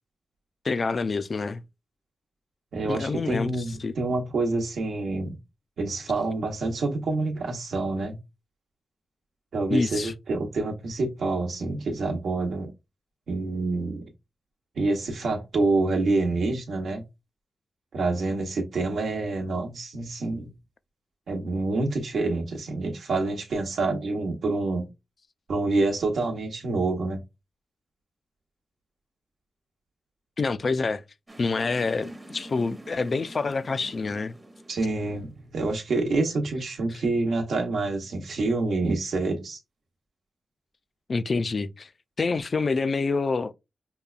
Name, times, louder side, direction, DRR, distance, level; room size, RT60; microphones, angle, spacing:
voice 1, 0.6-1.6 2.8-3.5 3.8-3.9 9.7-10.1 30.4-31.0 31.4-34.4 36.9-37.0 41.1-41.9 42.2-43.5, left 4 dB, 50° left, 0.3 m, -27 dB
voice 2, 2.7-5.4 5.8-8.2 9.5-12.7 13.3-14.1 14.7-17.0 17.9-20.5 21.3-24.9 25.5-27.2 34.7-39.6, right 3 dB, 80° right, 1.0 m, -27 dB
sound 1, 31.3-35.7, right 1 dB, 20° right, 0.7 m, -45 dB
5.2 x 2.2 x 2.4 m
cardioid pair, 75°, 0 cm